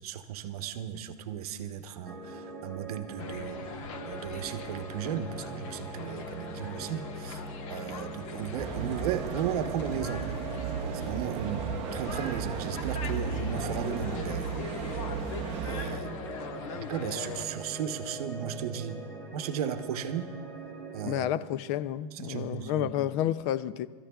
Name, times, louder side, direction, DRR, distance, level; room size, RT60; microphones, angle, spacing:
voice 1, 0.0-3.6 4.0-7.4 7.7-10.3 10.9-14.6 15.6-16.4 16.7-19.0 19.3-20.3 20.9-21.3 22.1-22.9, right 9 dB, 65° right, 0.9 m, -35 dB
sound 1, 2.0-21.2, right 2 dB, 15° left, 2.0 m, -43 dB
sound 2, 3.2-17.5, left 6 dB, 55° left, 1.1 m, -41 dB
sound 3, 8.6-16.0, right 7 dB, 30° right, 0.7 m, -35 dB
voice 2, 21.0-23.9, left 11 dB, 30° left, 0.4 m, -30 dB
29.0 x 13.5 x 2.3 m
supercardioid pair, 155°, 21 cm